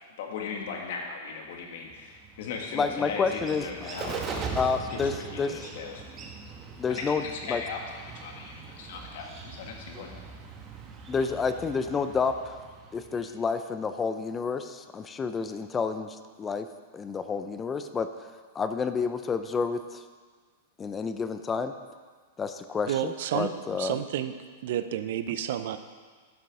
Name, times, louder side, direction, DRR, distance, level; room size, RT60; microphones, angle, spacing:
voice 1, 0.2-4.5 4.9-6.0 6.9-10.2, left 5 dB, 65° left, 1 dB, 1.9 m, -38 dB
Bird, 1.9-13.4, right 5 dB, 30° right, 1.3 m, -41 dB
voice 2, 2.7-3.6 4.5-5.5 6.8-7.2 7.5-7.6 11.1-12.6 12.9-16.7 16.9-18.1 18.5-20.0 20.8-21.7 22.4-24.0, left 5 dB, 20° left, 10 dB, 0.5 m, -29 dB
voice 3, 22.9-23.5 23.8-24.3 24.6-25.8, right 11 dB, 65° right, 10 dB, 0.6 m, -30 dB
11.5 x 6.7 x 4.9 m, 1.5 s
hypercardioid pair, 120°, 0 cm